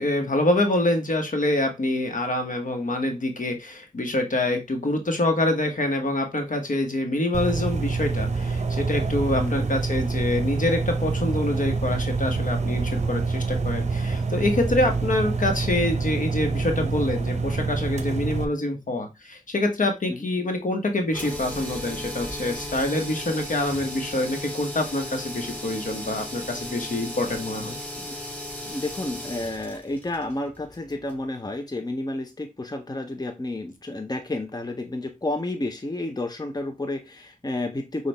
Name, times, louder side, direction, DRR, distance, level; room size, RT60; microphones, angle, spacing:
voice 1, 0.0-27.8, left 1 dB, 65° left, 4 dB, 1.1 m, -26 dB
sound 1, 7.3-18.4, right 4 dB, 50° right, 0.6 m, -26 dB
sound 2, 21.1-31.2, left 1 dB, 10° left, 2.3 m, -36 dB
voice 2, 28.7-38.1, left 2 dB, 25° left, 6 dB, 0.7 m, -31 dB
6.0 x 2.5 x 3.3 m, 0.23 s
cardioid pair, 40°, 15 cm